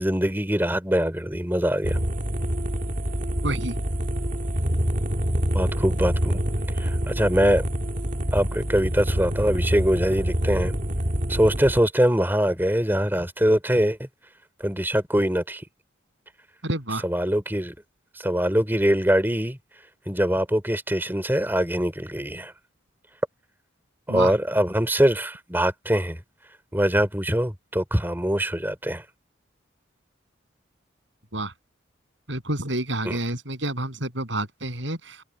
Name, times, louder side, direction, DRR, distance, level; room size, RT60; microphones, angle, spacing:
voice 1, 0.0-2.0 5.5-6.4 6.8-7.6 8.3-10.8 11.3-14.0 14.6-15.6 17.0-17.7 18.2-19.6 20.1-22.5 24.1-26.2 26.7-29.0 33.0-33.2, equal, 10° right, 3.1 m, -23 dB
sound 1, 1.8-11.8, equal, 40° right, 2.1 m, -26 dB
voice 2, 3.4-3.8 16.6-17.0 24.1-24.3 31.3-31.5 32.3-35.2, right 1 dB, 65° right, 7.6 m, -29 dB
head